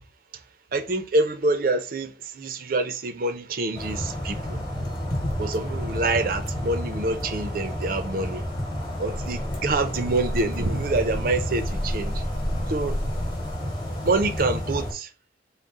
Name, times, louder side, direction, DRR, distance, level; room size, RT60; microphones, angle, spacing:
voice 1, 0.7-4.6 5.4-8.4 9.0-12.2 12.7-13.0 14.0-15.1, right 2 dB, 50° right, 0.5 m, -26 dB
sound 1, 3.7-14.9, equal, 25° left, 1.0 m, -30 dB
4.0 x 2.1 x 3.5 m
head